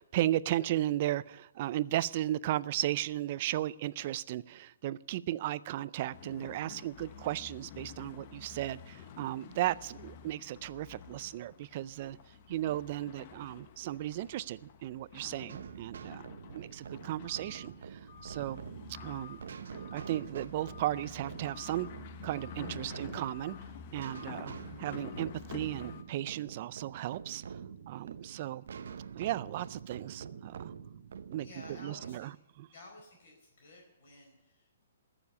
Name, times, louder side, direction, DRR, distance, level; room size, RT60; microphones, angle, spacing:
voice 1, 0.0-12.2 12.5-16.2 16.5-18.6 19.0-19.4 19.9-21.9 22.2-23.6 23.9-27.4 27.9-28.6 29.1-30.7 31.3-32.3 32.6-32.7, right 14 dB, 35° right, 19 dB, 0.4 m, -35 dB
sound 1, 6.1-26.0, left 7 dB, 35° left, 0.9 m, -49 dB
sound 2, 15.5-32.2, right 7 dB, 70° right, 0.8 m, -46 dB
voice 2, 31.4-32.3 32.7-34.8, left 2 dB, 50° left, -1 dB, 4.6 m, -53 dB
14.0 x 7.1 x 9.5 m, 0.91 s
hypercardioid pair, 165°, 0 cm